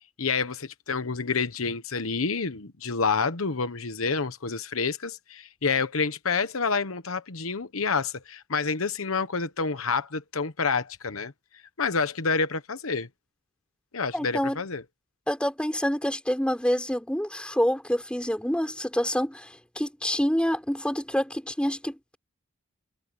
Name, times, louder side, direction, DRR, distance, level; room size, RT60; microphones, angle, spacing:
voice 1, 0.2-11.3 11.8-13.1 13.9-14.8, left 5 dB, 80° left, 1.1 m, -28 dB
voice 2, 14.1-14.6 15.3-22.2, equal, 5° left, 5.3 m, -27 dB
head